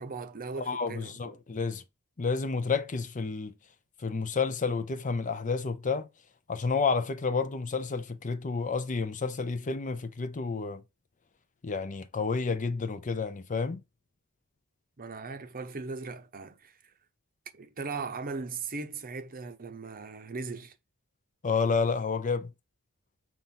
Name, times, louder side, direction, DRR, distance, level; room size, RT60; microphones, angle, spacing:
voice 1, 0.0-1.4 15.0-16.8 17.5-20.7, right 4 dB, 40° right, 0.8 m, -38 dB
voice 2, 0.7-1.8 2.2-3.5 4.0-6.1 6.5-10.8 11.6-13.8 21.4-22.5, left 4 dB, 35° left, 0.6 m, -30 dB
7.0 x 2.6 x 5.7 m
head